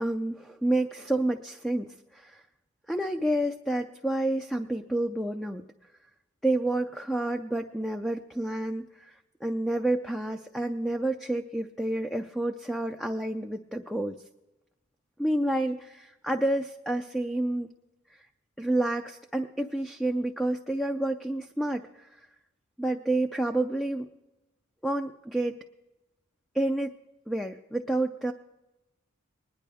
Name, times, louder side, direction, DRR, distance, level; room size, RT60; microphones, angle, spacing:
voice 1, 0.0-2.4 2.9-5.6 6.4-14.2 15.2-17.7 18.6-22.1 22.8-24.1 24.8-25.6 26.5-26.9 27.3-28.3, right 1 dB, ahead, 4 dB, 0.4 m, -29 dB
20.5 x 10.0 x 3.5 m, 0.98 s
head